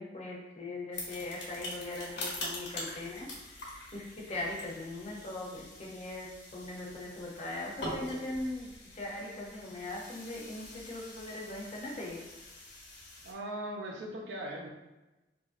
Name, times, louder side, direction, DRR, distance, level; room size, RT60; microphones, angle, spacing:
voice 1, 0.0-3.3 3.9-12.2, left 2 dB, 40° left, -3 dB, 0.6 m, -40 dB
sound 1, 0.9-13.3, left 1 dB, 85° left, 1.1 m, -44 dB
voice 2, 13.2-14.7, right 1 dB, 90° right, 0 dB, 0.6 m, -39 dB
2.9 x 2.5 x 2.4 m, 1.0 s
head